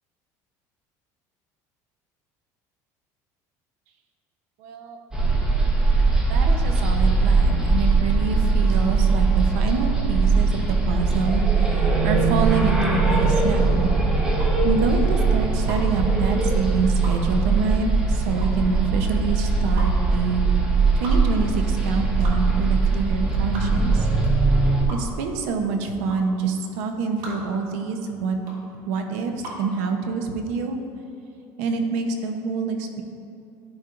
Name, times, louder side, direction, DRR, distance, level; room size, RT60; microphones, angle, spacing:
voice 1, 4.6-5.0 6.3-13.9 14.6-20.4 20.9-24.1 24.9-28.4 28.9-30.8 31.6-33.0, right 4 dB, 90° right, 4 dB, 0.8 m, -26 dB
sound 1, 5.1-24.8, right 4 dB, 10° right, 1.0 m, -20 dB
sound 2, 12.5-29.7, right 1 dB, 60° right, 1.5 m, -40 dB
13.0 x 4.4 x 2.5 m, 2.6 s
cardioid pair, 150°, 8 cm